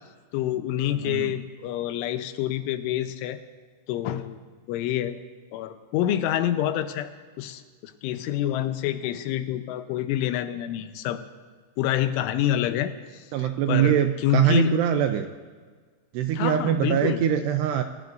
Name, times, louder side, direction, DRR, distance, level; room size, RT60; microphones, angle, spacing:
voice 1, 0.3-3.4 3.9-4.4 4.7-5.2 5.5-7.1 7.4-11.2 11.8-14.7 16.3-17.2, left 12 dB, 90° left, 9 dB, 3.3 m, -27 dB
voice 2, 0.9-1.3 13.3-15.3 16.1-17.8, right 9 dB, 80° right, 6 dB, 2.5 m, -23 dB
27.5 x 18.0 x 2.6 m, 1.5 s
omnidirectional pair, 5.4 m